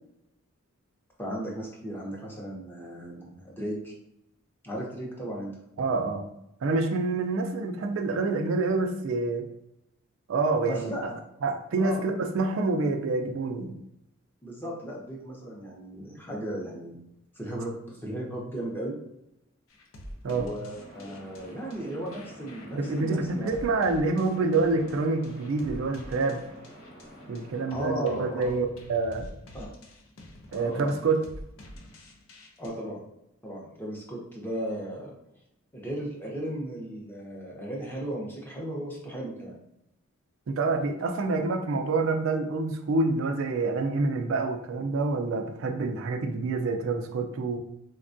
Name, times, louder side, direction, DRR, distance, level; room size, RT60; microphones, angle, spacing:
voice 1, 1.2-3.9 4.6-5.5 10.7-11.0 11.8-12.1 14.4-17.0 17.4-19.0 20.3-23.5 27.7-28.5 29.5-29.7 30.5-31.0 32.6-33.0 33.4-35.1 35.7-39.6, right 1 dB, 10° left, -3 dB, 0.6 m, -36 dB
voice 2, 5.8-6.3 6.6-9.5 10.3-11.1 11.4-13.8 20.2-20.5 22.7-26.4 27.3-29.3 30.5-31.3 40.5-47.6, right 3 dB, 65° right, 5 dB, 0.3 m, -27 dB
sound 1, 19.7-32.7, equal, 70° left, 0.5 m, -47 dB
sound 2, 20.7-28.0, equal, 50° left, 0.9 m, -48 dB
3.3 x 2.2 x 2.5 m, 0.81 s
head